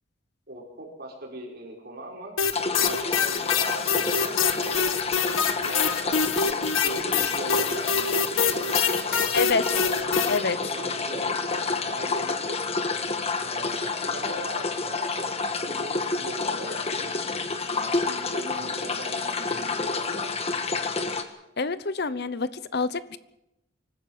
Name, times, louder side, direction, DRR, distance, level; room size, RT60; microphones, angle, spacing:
voice 1, 0.5-2.3 2.8-5.1 5.5-10.2 10.6-12.8 13.4-20.6, right 1 dB, 50° right, -1 dB, 5.9 m, -41 dB
sound 1, 2.4-10.4, left 6 dB, 85° left, 1.5 m, -25 dB
sound 2, 2.5-21.2, left 4 dB, 30° left, 1.7 m, -29 dB
voice 2, 9.3-9.7 10.3-10.6 21.6-23.2, left 4 dB, 55° left, 15 dB, 0.9 m, -26 dB
25.0 x 15.0 x 7.6 m, 0.88 s
head